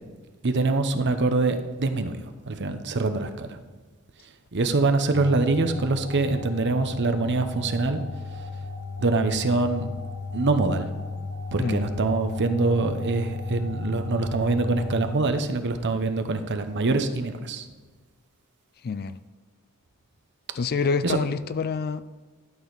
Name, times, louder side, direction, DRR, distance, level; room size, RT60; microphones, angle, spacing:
voice 1, 0.4-2.2 2.5-3.6 4.5-8.0 9.0-9.9 10.3-10.9 11.5-17.6 21.0-21.2, right 3 dB, 50° right, 8 dB, 0.8 m, -24 dB
sound 1, 5.1-15.1, left 3 dB, 70° left, 1.0 m, -35 dB
voice 2, 18.8-19.2 20.5-22.0, left 5 dB, 45° left, 14 dB, 0.4 m, -26 dB
12.0 x 6.4 x 4.0 m, 1.3 s
head